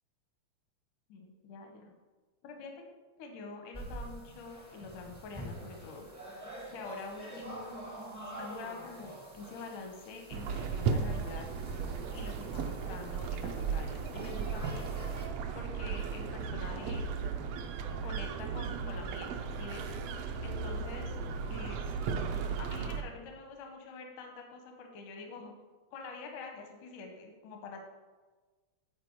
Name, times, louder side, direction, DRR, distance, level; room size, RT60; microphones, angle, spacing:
voice 1, 1.1-1.9 2.4-2.7 3.2-6.1 6.7-7.8 8.3-11.5 12.1-15.0 15.5-17.1 18.0-19.9 20.4-21.2 21.5-21.8 22.6-25.5 25.9-27.8, left 4 dB, 85° left, 3 dB, 2.4 m, -46 dB
sound 1, 3.7-15.3, right 1 dB, 25° right, 0.3 m, -47 dB
sound 2, 10.3-23.0, right 5 dB, 75° right, 1.5 m, -35 dB
12.5 x 4.5 x 4.5 m, 1.3 s
omnidirectional pair, 3.5 m